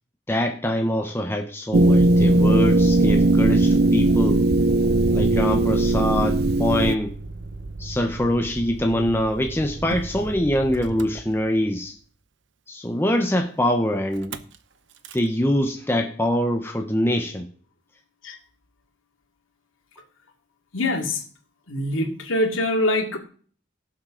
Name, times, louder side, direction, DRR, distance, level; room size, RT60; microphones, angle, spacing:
voice 1, 0.3-4.4 5.1-7.1 7.8-11.9 12.7-14.4 15.1-17.5, left 1 dB, 10° left, 4 dB, 0.8 m, -24 dB
sound 1, 1.7-6.9, right 2 dB, 50° right, 0.5 m, -18 dB
Motor vehicle (road), 5.5-11.9 14.1-14.6 14.9-15.3, right 2 dB, 65° right, 0.9 m, -37 dB
voice 2, 20.7-21.2 21.7-23.2, left 1 dB, 85° left, 3 dB, 2.5 m, -24 dB
17.5 x 7.5 x 3.9 m, 0.44 s
head